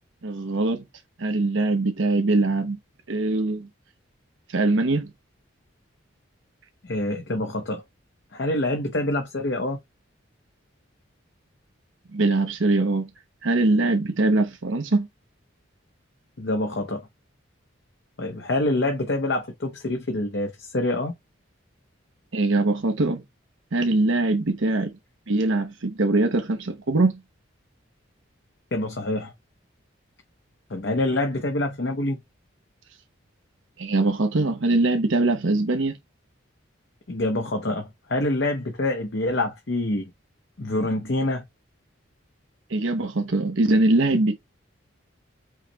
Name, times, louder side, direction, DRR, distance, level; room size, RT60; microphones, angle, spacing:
voice 1, 0.2-0.8 1.2-2.8 3.1-3.7 4.5-5.1 12.1-13.1 13.4-15.1 22.3-23.2 23.7-25.0 25.3-27.2 33.8-36.0 42.7-44.3, right 2 dB, 70° right, 0.9 m, -22 dB
voice 2, 6.8-7.8 8.3-9.8 16.4-17.0 18.2-21.1 28.7-29.3 30.7-32.2 37.1-40.1 40.6-41.4, left 1 dB, 55° left, 0.8 m, -26 dB
5.6 x 3.2 x 2.8 m
head